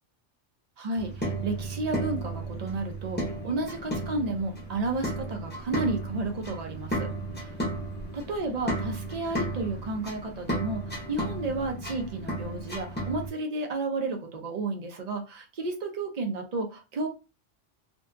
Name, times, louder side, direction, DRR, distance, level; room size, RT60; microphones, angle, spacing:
voice 1, 0.8-7.1 8.1-17.1, right 2 dB, 55° right, 4 dB, 0.4 m, -32 dB
sound 1, 0.9-13.3, right 1 dB, 10° left, 0.6 m, -34 dB
2.6 x 2.2 x 2.4 m, 0.29 s
omnidirectional pair, 1.2 m